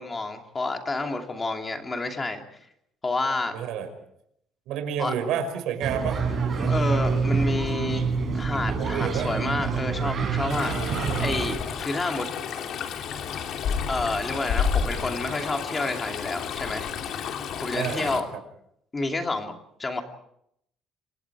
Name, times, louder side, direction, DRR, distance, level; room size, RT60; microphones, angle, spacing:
voice 1, 0.0-2.4 3.0-3.6 5.0-5.1 6.6-12.3 13.9-16.9 17.6-18.2 18.9-19.5 19.8-20.0, left 2 dB, 20° left, 4 dB, 2.8 m, -29 dB
voice 2, 3.5-3.9 4.7-6.2 6.5-6.7 8.7-9.3 10.5-11.4 17.7-18.2, right 8 dB, 75° right, 6 dB, 5.7 m, -30 dB
sound 1, 5.8-11.6, right 5 dB, 30° right, 7.3 m, -26 dB
Stream, 10.5-18.2, left 7 dB, 55° left, 3.0 m, -31 dB
29.0 x 25.5 x 4.9 m, 0.73 s
cardioid pair, 150°, 0 cm